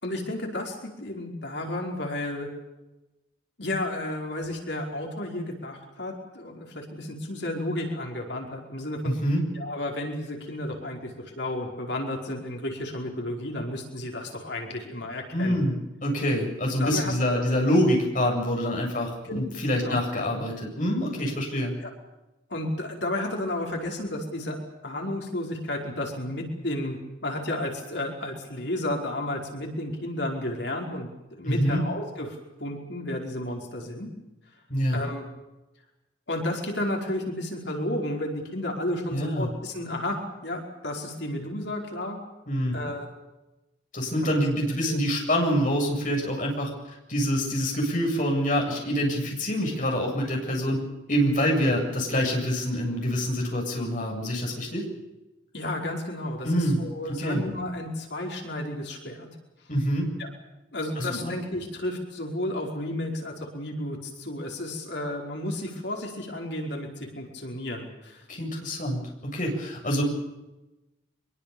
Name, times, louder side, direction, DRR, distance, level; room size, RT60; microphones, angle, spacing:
voice 1, 0.0-2.5 3.6-9.1 9.5-15.6 16.8-17.4 19.3-19.4 19.8-20.0 21.8-21.9 22.5-24.6 24.8-27.0 27.2-34.1 34.9-35.2 36.3-42.2 42.7-43.1 44.2-44.5 44.8-45.0 55.5-59.3 60.2-60.3 60.7-68.2, left 1 dB, 60° left, 1 dB, 5.1 m, -32 dB
voice 2, 9.0-9.4 15.3-21.7 31.4-31.8 34.7-35.0 39.1-39.5 42.5-42.8 43.9-46.7 47.1-50.8 51.1-54.8 56.4-56.8 57.1-57.4 59.7-60.1 61.0-61.3 68.3-70.0, equal, 40° left, 0 dB, 7.9 m, -26 dB
24.5 x 23.5 x 7.1 m, 1.0 s
head